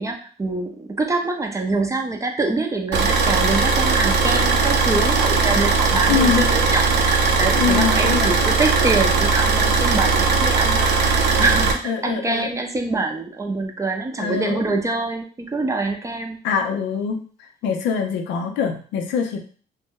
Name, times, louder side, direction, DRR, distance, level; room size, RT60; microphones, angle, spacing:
voice 1, 0.0-16.4, right 3 dB, 15° right, 3 dB, 0.5 m, -25 dB
Car / Idling, 2.9-11.7, right 4 dB, 65° right, 0.6 m, -19 dB
voice 2, 6.1-6.4 7.6-8.3 11.9-12.5 14.2-14.7 16.4-17.2 17.6-19.4, left 7 dB, 90° left, 4 dB, 0.6 m, -23 dB
2.6 x 2.1 x 3.6 m, 0.41 s
cardioid pair, 110°, 19 cm